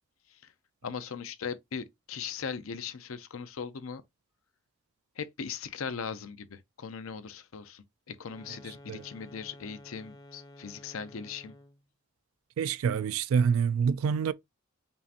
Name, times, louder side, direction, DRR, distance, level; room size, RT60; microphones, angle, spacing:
voice 1, 0.8-4.0 5.2-11.6, left 6 dB, 80° left, 0.6 m, -39 dB
sound 1, 8.2-11.8, left 1 dB, 20° left, 0.6 m, -52 dB
voice 2, 12.6-14.3, right 6 dB, 80° right, 0.3 m, -26 dB
5.4 x 2.5 x 2.7 m
head